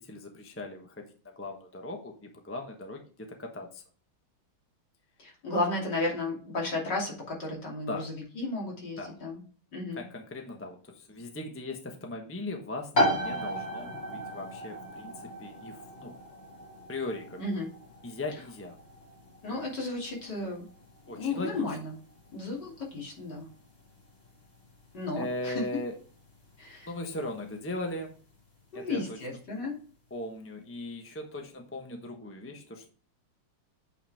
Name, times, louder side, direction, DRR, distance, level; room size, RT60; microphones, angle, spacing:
voice 1, 0.0-3.8 7.9-8.1 9.0-9.2 9.9-12.9 13.2-16.2 16.9-17.4 18.0-18.8 21.1-21.8 25.2-26.0 26.9-28.2 28.7-29.3 30.1-32.9, left 2 dB, 10° left, 3 dB, 0.7 m, -38 dB
voice 2, 5.2-9.4 9.7-10.0 17.4-17.7 19.4-20.7 21.1-21.9 22.3-23.5 24.9-25.5 26.6-26.9 28.7-29.7, left 2 dB, 55° left, -2 dB, 3.4 m, -33 dB
sound 1, 12.9-27.4, equal, 30° left, 2.3 m, -36 dB
8.5 x 5.8 x 3.5 m, 0.41 s
omnidirectional pair, 2.3 m